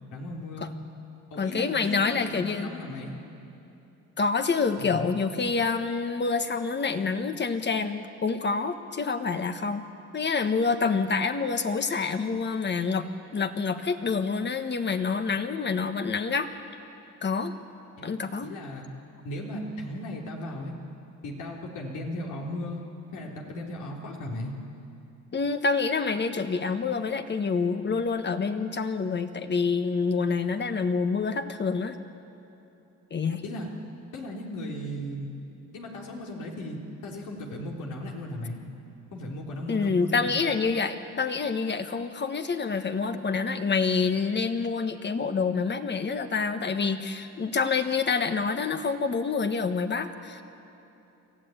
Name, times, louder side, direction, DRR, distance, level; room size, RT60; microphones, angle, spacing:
voice 1, 0.1-0.7 1.3-3.2 4.8-5.1 18.0-18.1 18.4-18.9 19.2-20.7 21.2-22.8 23.1-24.5 33.4-33.7 34.1-35.3 35.7-38.6 39.1-40.3, left 1 dB, 80° left, -1 dB, 3.5 m, -36 dB
voice 2, 1.4-2.7 4.2-9.8 10.1-13.1 13.3-16.5 17.2-17.5 18.0-18.5 25.3-32.0 33.1-33.4 39.7-50.4, left 4 dB, 35° left, 8 dB, 1.4 m, -27 dB
24.0 x 15.0 x 9.1 m, 2.9 s
cardioid pair, 90°, 30 cm